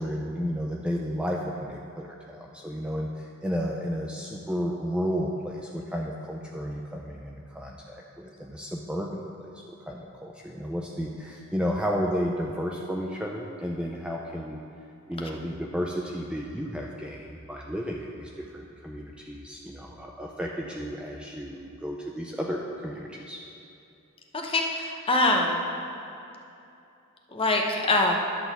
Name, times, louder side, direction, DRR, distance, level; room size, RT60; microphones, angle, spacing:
voice 1, 0.0-14.6 15.1-23.4, equal, 5° right, -1 dB, 0.4 m, -32 dB
voice 2, 24.4-25.6 27.3-28.1, left 2 dB, 25° left, 1 dB, 0.8 m, -24 dB
11.0 x 3.9 x 6.9 m, 2.7 s
head